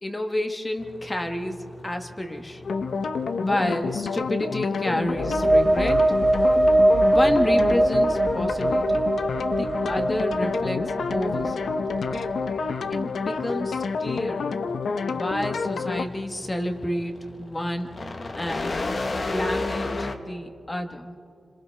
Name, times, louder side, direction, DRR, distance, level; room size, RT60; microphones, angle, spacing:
voice 1, 0.0-2.6 3.4-6.1 7.0-9.0 9.4-11.8 12.9-14.6 15.1-17.9 18.4-18.7 19.3-21.1, left 1 dB, 15° left, 5 dB, 1.2 m, -30 dB
sound 1, 0.8-20.2, left 2 dB, 35° left, 1.0 m, -37 dB
sound 2, 2.6-16.1, left 5 dB, 75° left, 0.7 m, -28 dB
sound 3, 5.0-12.6, right 1 dB, 30° right, 1.4 m, -22 dB
30.0 x 26.0 x 3.3 m, 2.6 s
wide cardioid pair, 175°, 0 cm